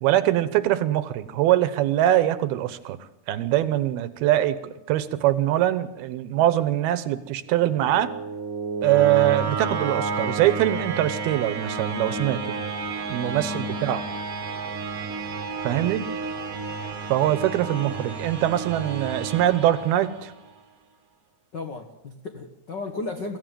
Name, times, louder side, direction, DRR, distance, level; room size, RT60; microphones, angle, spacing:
voice 1, 0.0-3.0 3.3-8.1 8.8-12.6 13.1-14.0 15.6-16.1 17.1-20.3, right 13 dB, 75° right, 14 dB, 2.8 m, -23 dB
sound 1, 7.5-20.5, right 4 dB, 45° right, 1.9 m, -31 dB
voice 2, 13.4-13.9 15.7-16.0 21.5-23.4, left 3 dB, 75° left, 5 dB, 1.0 m, -35 dB
23.5 x 15.0 x 9.1 m, 0.93 s
omnidirectional pair, 4.6 m